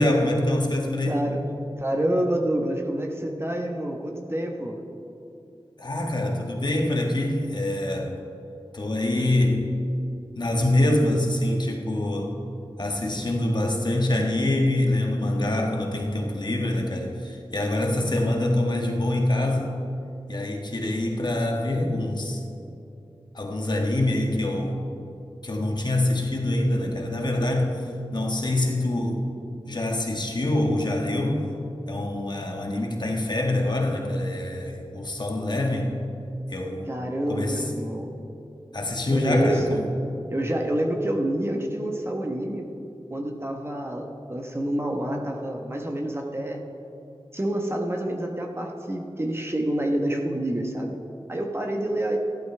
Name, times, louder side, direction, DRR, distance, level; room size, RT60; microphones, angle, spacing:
voice 1, 0.0-1.3 5.8-8.2 8.7-9.7 10.3-12.3 12.8-19.8 20.3-22.4 23.3-24.8 25.4-27.8 28.1-29.2 29.7-31.5 31.9-36.0 36.5-37.0 37.3-37.6 38.7-39.8, left 1 dB, 50° left, 1 dB, 1.4 m, -25 dB
voice 2, 1.0-1.5 1.8-4.8 36.9-38.2 39.1-39.8 40.3-42.7 43.1-46.6 47.3-51.0 51.3-52.2, right 1 dB, 25° right, 2 dB, 1.1 m, -28 dB
14.5 x 12.0 x 3.3 m, 2.7 s
wide cardioid pair, 75°, 10 cm